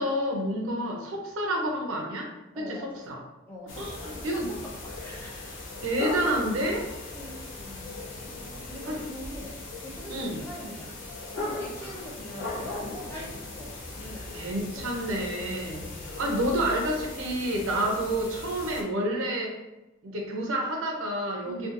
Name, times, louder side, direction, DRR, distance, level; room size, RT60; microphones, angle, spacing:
voice 1, 0.0-2.3 2.7-3.2 3.8-4.5 5.8-6.8 8.9-9.0 10.1-10.4 14.3-15.9 16.2-19.5 20.0-21.7, right 1 dB, 85° right, 0 dB, 0.6 m, -29 dB
voice 2, 2.5-3.0 3.5-5.8 7.1-11.0 11.3-12.8 13.1-14.8 15.8-16.1 21.5-21.7, equal, 10° left, -5 dB, 0.5 m, -43 dB
sound 1, 3.7-18.8, left 2 dB, 70° left, 0.5 m, -38 dB
2.6 x 2.3 x 2.5 m, 0.97 s
head